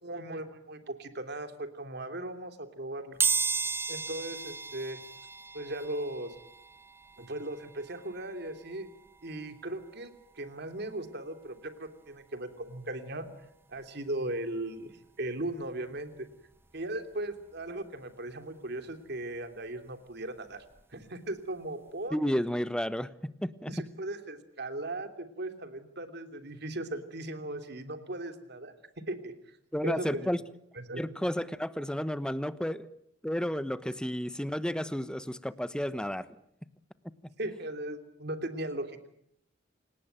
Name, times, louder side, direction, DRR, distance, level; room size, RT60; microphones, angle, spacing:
voice 1, 0.0-3.2 3.9-5.0 5.5-6.3 7.2-8.9 9.2-13.3 13.7-16.3 16.7-20.6 20.9-22.2 23.7-28.7 29.1-29.3 29.8-30.3 30.7-31.0 37.4-39.1, right 1 dB, 60° right, 8 dB, 3.0 m, -38 dB
sound 1, 3.2-13.9 14.3-14.4 15.6-15.7 16.0-18.1 18.4-21.0 21.4-21.6 21.9-22.0, right 4 dB, 10° right, 1.4 m, -37 dB
voice 2, 22.1-23.7 29.7-30.4 31.0-32.9 33.2-36.3, equal, 5° left, 14 dB, 1.0 m, -32 dB
28.0 x 18.0 x 9.1 m, 0.75 s
head